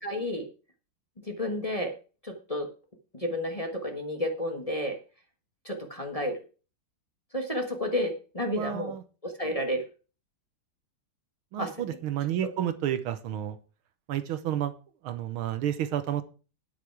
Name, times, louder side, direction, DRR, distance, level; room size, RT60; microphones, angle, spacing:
voice 1, 0.0-0.5 1.2-1.9 2.2-2.7 3.1-5.0 5.6-6.4 7.3-8.9 9.2-9.8 11.6-11.7, left 1 dB, 20° left, 3 dB, 1.4 m, -31 dB
voice 2, 8.5-9.0 11.5-13.6 14.1-14.7 15.0-16.2, right 11 dB, 75° right, 12 dB, 1.7 m, -30 dB
9.9 x 8.5 x 4.7 m, 0.35 s
omnidirectional pair, 2.4 m